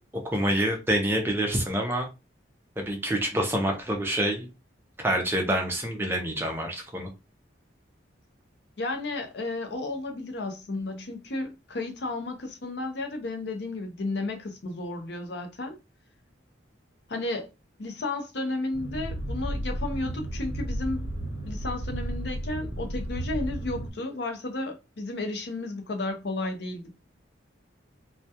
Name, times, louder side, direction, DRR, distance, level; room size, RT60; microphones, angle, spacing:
voice 1, 0.3-2.1 2.8-4.5 5.0-7.1, right 1 dB, 10° right, 0.4 m, -27 dB
voice 2, 8.8-15.7 17.1-17.5 17.8-21.1 21.5-26.9, left 2 dB, 60° left, 0.6 m, -33 dB
sound 1, 18.7-23.9, right 1 dB, 90° left, 1.0 m, -33 dB
2.2 x 2.2 x 2.7 m
head